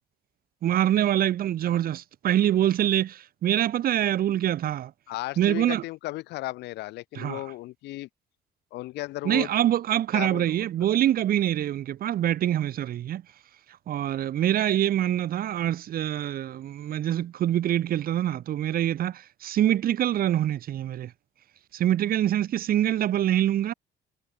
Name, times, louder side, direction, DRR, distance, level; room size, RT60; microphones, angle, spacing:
voice 1, 0.6-4.9 5.4-5.8 7.1-7.4 9.2-13.2 13.9-21.1 21.7-23.7, right 11 dB, 60° right, 2.7 m, -25 dB
voice 2, 5.1-8.1 8.7-9.5 10.1-10.7, left 18 dB, 85° left, 6.8 m, -35 dB
cardioid pair, 110°, 17 cm